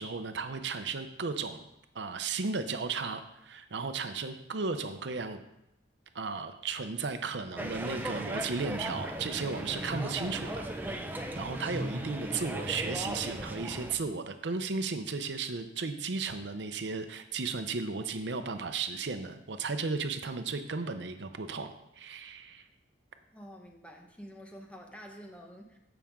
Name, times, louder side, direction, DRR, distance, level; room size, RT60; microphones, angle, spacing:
voice 1, 0.0-1.6 1.9-5.4 6.1-11.1 11.4-22.6, right 4 dB, 75° right, 8 dB, 0.7 m, -35 dB
sound 1, 7.6-13.9, right 1 dB, 10° right, 0.8 m, -37 dB
voice 2, 23.3-25.8, equal, 5° left, 1 dB, 1.1 m, -48 dB
14.5 x 5.9 x 3.7 m, 0.84 s
head